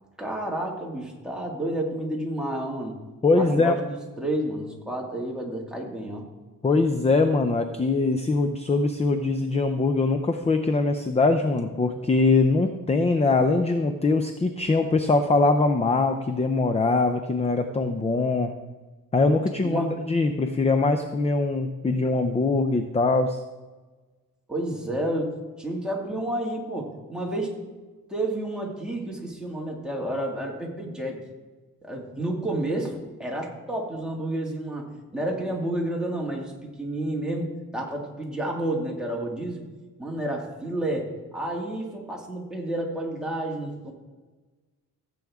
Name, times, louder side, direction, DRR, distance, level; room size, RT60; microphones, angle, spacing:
voice 1, 0.2-3.0 3.3-6.3 19.6-20.0 24.5-25.3 25.6-27.6 28.1-31.2 31.8-39.6 40.0-43.9, right 1 dB, ahead, -2 dB, 2.0 m, -30 dB
voice 2, 3.2-3.8 6.6-18.5 19.1-19.8 20.1-23.4, left 3 dB, 20° left, 8 dB, 0.5 m, -22 dB
15.5 x 7.7 x 3.6 m, 1.3 s
cardioid pair, 120°, 37 cm